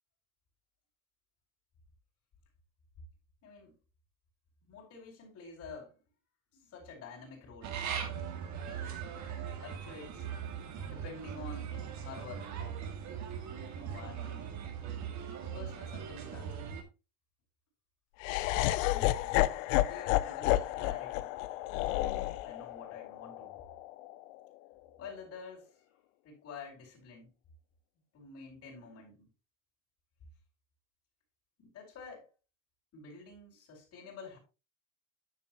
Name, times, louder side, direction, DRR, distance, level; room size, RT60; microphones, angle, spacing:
voice 1, 3.4-3.7 4.6-5.9 6.5-7.8 8.5-9.0 9.6-10.3 10.8-11.7 12.0-12.7 13.7-14.5 15.5-16.7 18.8-19.4 19.8-21.3 22.4-23.6 25.0-25.8 26.2-27.3 28.1-29.3 31.6-32.3 32.9-34.4, left 4 dB, 35° left, -4 dB, 4.5 m, -49 dB
sound 1, 7.6-16.8, right 8 dB, 45° right, 2.1 m, -40 dB
Laughter, 18.2-24.4, left 16 dB, 70° left, 0.8 m, -31 dB
9.6 x 7.4 x 3.0 m, 0.30 s
supercardioid pair, 135°, 40 cm